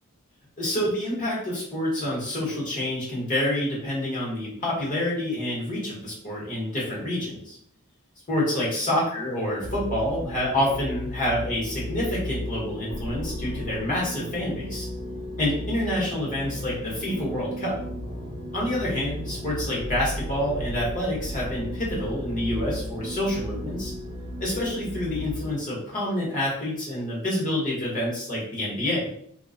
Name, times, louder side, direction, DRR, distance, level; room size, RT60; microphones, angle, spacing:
voice 1, 0.6-7.6 8.3-14.9 15.4-17.8 18.5-23.9 24.4-29.1, left 1 dB, 40° left, -5 dB, 0.9 m, -27 dB
sound 1, 9.6-25.5, left 1 dB, 60° right, 0.8 m, -35 dB
2.4 x 2.2 x 2.4 m, 0.66 s
head